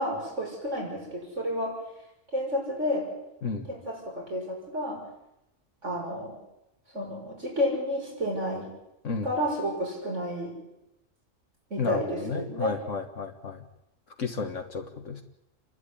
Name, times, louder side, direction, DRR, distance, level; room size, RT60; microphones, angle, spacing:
voice 1, 0.0-1.8 2.3-3.1 3.7-5.0 5.8-6.4 6.9-8.7 9.2-10.5 11.7-12.7, equal, 65° right, -1 dB, 7.0 m, -30 dB
voice 2, 11.8-13.6 14.2-15.2, left 4 dB, 70° left, 4 dB, 1.9 m, -33 dB
29.0 x 12.0 x 10.0 m, 0.89 s
omnidirectional pair, 1.3 m